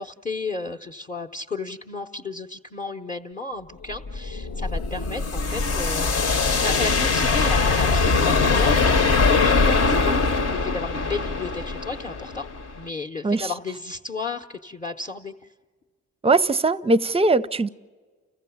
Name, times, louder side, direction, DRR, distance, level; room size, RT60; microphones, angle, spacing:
voice 1, 0.0-10.2 10.5-12.5 12.7-15.3, left 3 dB, 25° left, 2 dB, 0.9 m, -33 dB
sound 1, 3.9-12.8, left 4 dB, 55° left, 1.1 m, -22 dB
voice 2, 16.2-17.7, right 3 dB, 20° right, 16 dB, 0.6 m, -20 dB
29.5 x 15.0 x 7.1 m, 1.5 s
cardioid pair, 90°, 30 cm